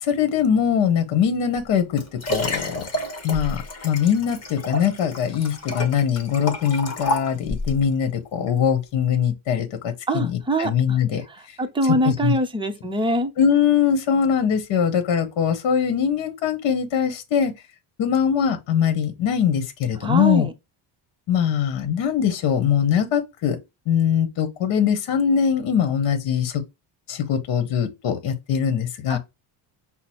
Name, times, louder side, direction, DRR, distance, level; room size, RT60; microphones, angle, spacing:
voice 1, 0.0-2.0 2.3-2.8 3.2-11.2 11.8-12.3 13.4-17.5 18.0-20.5 21.3-23.6 23.9-26.6 27.1-29.2, left 8 dB, 60° left, 1.0 m, -22 dB
Liquid, 1.6-7.8 8.5-8.6, left 1 dB, 30° left, 1.2 m, -30 dB
voice 2, 10.1-11.0 11.6-13.3 20.0-20.5 29.1-29.2, right 1 dB, 10° right, 0.6 m, -23 dB
5.8 x 2.0 x 4.2 m
cardioid pair, 135°, 50 cm